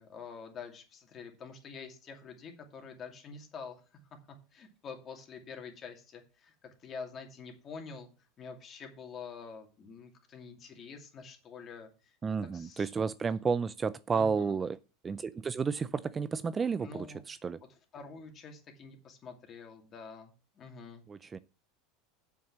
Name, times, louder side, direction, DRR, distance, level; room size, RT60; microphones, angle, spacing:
voice 1, 0.0-4.0 4.5-8.1 8.4-12.2 12.4-12.9 14.1-14.6 16.8-17.2 17.9-21.0, left 5 dB, 35° left, 2.5 m, -47 dB
voice 2, 12.2-14.8 15.0-17.6 21.1-21.4, right 5 dB, 20° right, 0.4 m, -32 dB
7.2 x 6.0 x 7.3 m
supercardioid pair, 115°, 0 cm